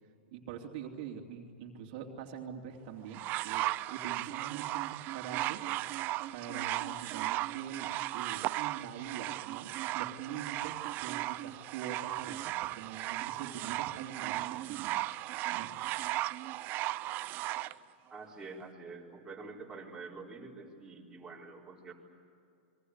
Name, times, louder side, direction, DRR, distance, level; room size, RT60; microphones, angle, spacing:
voice 1, 0.3-5.6 6.3-15.0 15.5-15.7, right 8 dB, 50° right, 1 dB, 2.9 m, -44 dB
sound 1, 3.1-17.7 18.6-18.7, right 17 dB, 35° right, 0.5 m, -36 dB
voice 2, 18.1-21.9, right 4 dB, 10° right, -4 dB, 4.3 m, -47 dB
29.0 x 23.0 x 8.1 m, 2.5 s
supercardioid pair, 150°, 6 cm